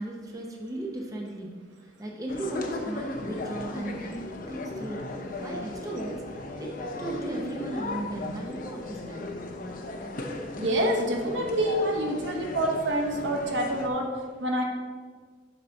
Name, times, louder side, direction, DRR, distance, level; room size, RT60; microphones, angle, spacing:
voice 1, 0.0-1.5 2.0-4.2 4.5-5.0 5.4-6.2 6.6-9.2, right 1 dB, 20° right, -1 dB, 0.8 m, -36 dB
sound 1, 2.3-13.9, left 2 dB, 45° left, 0.7 m, -36 dB
voice 2, 10.6-14.1 14.4-14.6, right 1 dB, 65° right, 1 dB, 1.1 m, -27 dB
6.8 x 4.1 x 5.9 m, 1.5 s
head